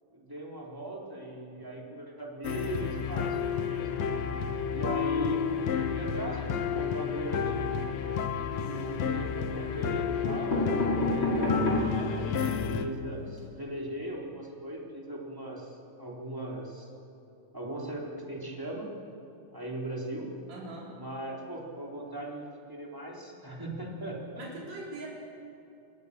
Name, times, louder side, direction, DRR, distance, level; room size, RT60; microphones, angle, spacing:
voice 1, 0.1-3.9 4.7-5.6 5.9-7.8 8.5-16.9 17.5-18.9 19.5-20.3 20.9-24.4, right 1 dB, 5° right, -2 dB, 3.6 m, -39 dB
sound 1, 2.4-12.9, left 7 dB, 70° left, 2.2 m, -31 dB
sound 2, 8.5-9.1 9.9-10.0 10.2-12.0 12.5-12.6 12.8-12.9 13.2-13.4, left 2 dB, 40° left, 6.6 m, -29 dB
voice 2, 20.5-20.9 24.4-25.1, right 2 dB, 65° right, -4 dB, 5.4 m, -41 dB
27.0 x 21.5 x 6.9 m, 2.9 s
omnidirectional pair, 3.4 m